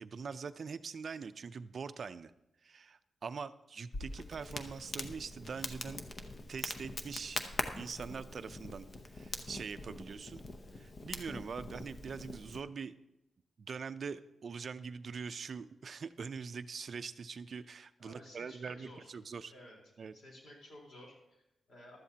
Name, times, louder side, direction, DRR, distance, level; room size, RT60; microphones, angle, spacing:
voice 1, 0.0-2.3 2.6-6.0 6.5-7.4 7.8-8.9 9.1-10.4 10.7-12.9 13.6-19.5 20.0-20.1, right 5 dB, 45° right, 12 dB, 0.4 m, -43 dB
Crackle, 3.9-12.6, left 2 dB, 35° left, 0.7 m, -43 dB
voice 2, 18.0-19.1 19.5-19.8 20.1-22.0, left 1 dB, 70° left, -2 dB, 3.9 m, -54 dB
15.5 x 12.0 x 2.8 m, 0.87 s
wide cardioid pair, 170°, 0 cm